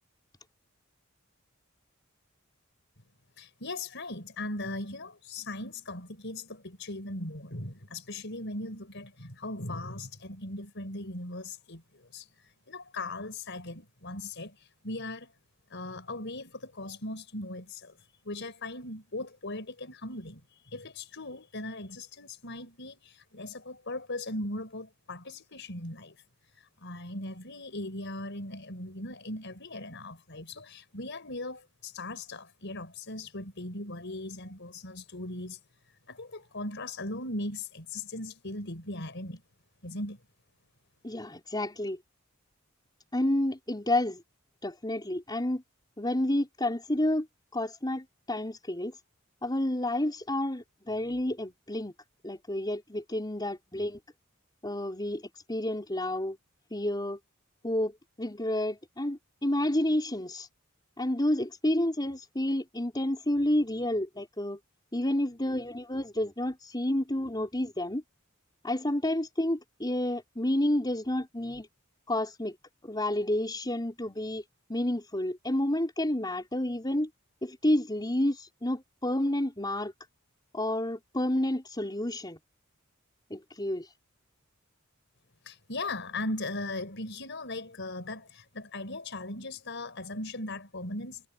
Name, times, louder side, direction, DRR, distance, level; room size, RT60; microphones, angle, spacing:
voice 1, 3.4-15.3 15.7-18.0 18.2-26.2 26.5-35.6 36.1-39.4 39.8-40.2 85.4-91.3, left 2 dB, 60° left, 5.3 m, -39 dB
voice 2, 41.0-42.0 43.1-44.2 44.6-45.6 46.0-47.3 47.5-49.0 49.4-51.9 52.2-54.0 54.6-55.2 55.5-56.4 56.7-57.2 57.6-60.5 61.0-64.6 64.9-68.0 68.6-71.7 72.1-72.5 72.8-74.4 74.7-77.1 77.4-79.9 80.5-82.4 83.3-83.9, left 1 dB, 20° left, 5.0 m, -30 dB
head